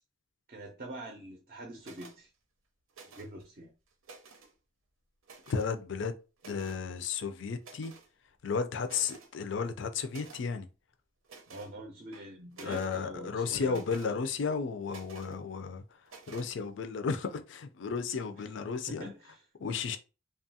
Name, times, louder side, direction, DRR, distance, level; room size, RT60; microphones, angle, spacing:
voice 1, 0.5-2.3 3.1-3.7 11.5-14.2 18.3-18.4 19.0-19.5, right 1 dB, 40° right, 0.5 m, -45 dB
sound 1, 1.8-2.2 2.9-3.4 3.9-4.5 5.2-5.7 6.4-6.8 7.6-8.1 8.5-8.6 8.8-9.3 10.1-10.5 11.2-11.7 12.1-13.0 13.7-14.1 14.9-15.4 16.1-16.5, right 4 dB, 85° right, 0.6 m, -52 dB
voice 2, 5.5-6.1 6.4-7.9 8.4-10.7 12.6-15.8 16.3-19.1 19.6-20.0, left 5 dB, 60° left, 0.4 m, -33 dB
2.9 x 2.3 x 2.7 m
head